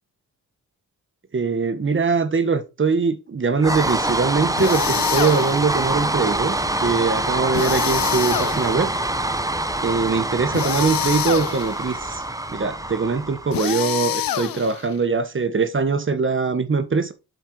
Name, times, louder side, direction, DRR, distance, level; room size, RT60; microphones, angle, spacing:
voice 1, 1.3-8.9 9.8-12.2 12.5-17.1, right 4 dB, 30° right, 1.3 m, -22 dB
sound 1, 3.6-13.9, right 2 dB, 10° right, 1.0 m, -25 dB
sound 2, 4.6-5.7 7.5-9.0 10.5-11.8 13.5-14.9, left 10 dB, 65° left, 0.8 m, -26 dB
8.0 x 4.5 x 4.5 m
cardioid pair, 75°, 37 cm